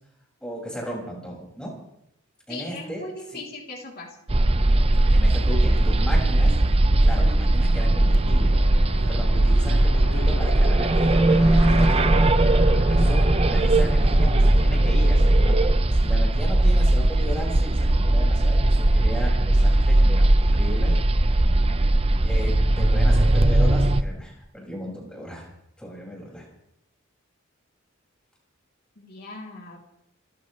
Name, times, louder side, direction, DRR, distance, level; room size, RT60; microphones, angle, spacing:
voice 1, 0.4-1.7 2.5-3.0 3.3-3.4 4.8-6.5 7.0-8.6 9.1-12.4 12.9-20.9 22.2-25.5 25.8-26.5, equal, 5° left, -3 dB, 6.0 m, -36 dB
voice 2, 2.5-4.1 21.5-21.8 29.0-29.8, left 2 dB, 45° left, -2 dB, 3.4 m, -39 dB
sound 1, 4.3-24.0, right 1 dB, 25° right, 0.6 m, -19 dB
sound 2, 7.3-16.3, left 3 dB, 70° left, 1.1 m, -39 dB
30.0 x 14.5 x 3.3 m, 0.78 s
head